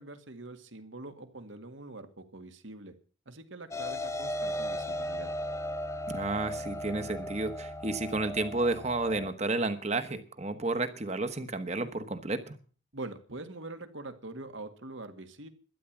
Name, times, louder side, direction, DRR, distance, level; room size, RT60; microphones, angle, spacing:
voice 1, 0.0-2.9 3.3-5.3 12.9-15.5, right 2 dB, 65° right, 8 dB, 1.9 m, -44 dB
sound 1, 3.7-9.3, left 1 dB, 15° left, 0.9 m, -36 dB
voice 2, 6.1-12.6, right 2 dB, 35° right, 9 dB, 1.3 m, -31 dB
12.5 x 10.5 x 7.4 m, 0.41 s
head